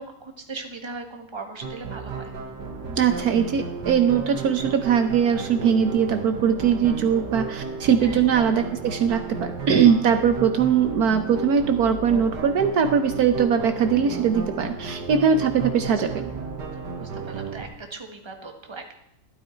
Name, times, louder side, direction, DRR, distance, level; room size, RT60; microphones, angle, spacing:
voice 1, 0.0-2.3 8.0-8.3 16.0-16.1 17.0-18.9, right 3 dB, 15° right, 4 dB, 1.4 m, -38 dB
sound 1, 1.6-17.6, right 4 dB, 85° right, 2.2 m, -34 dB
voice 2, 3.0-16.3, right 7 dB, 70° right, 8 dB, 1.3 m, -21 dB
12.5 x 12.5 x 4.5 m, 0.80 s
omnidirectional pair, 1.8 m